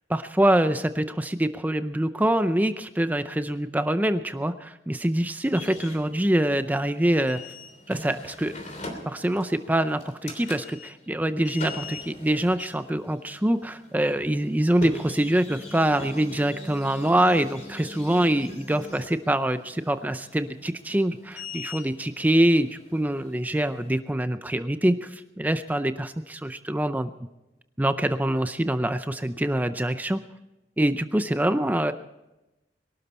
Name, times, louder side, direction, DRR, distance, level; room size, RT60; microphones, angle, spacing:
voice 1, 0.1-7.4 7.9-8.5 9.1-27.1 27.8-30.2 30.8-31.9, right 1 dB, 10° right, 10 dB, 0.5 m, -25 dB
sound 1, 5.5-23.9, left 2 dB, 40° left, 3.2 m, -42 dB
23.0 x 12.5 x 4.3 m, 0.99 s
head